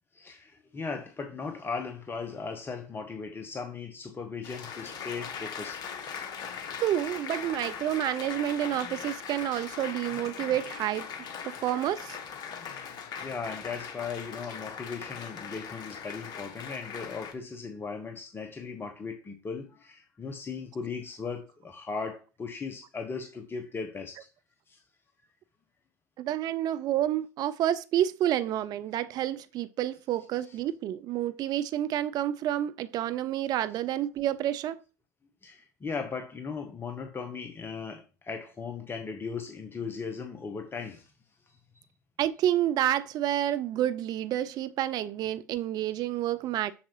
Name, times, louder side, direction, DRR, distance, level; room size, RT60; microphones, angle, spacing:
voice 1, 0.1-6.3 11.5-11.6 12.7-24.3 24.7-24.8 30.4-30.6 35.4-41.1 41.7-41.9, left 5 dB, 25° left, 1.0 m, -38 dB
Applause, 4.4-17.3, left 7 dB, 45° left, 1.4 m, -40 dB
voice 2, 6.8-11.1 11.4-12.2 26.2-34.8 42.2-46.7, right 12 dB, 45° right, 0.4 m, -29 dB
7.2 x 6.4 x 3.1 m
hypercardioid pair, 75°, 10 cm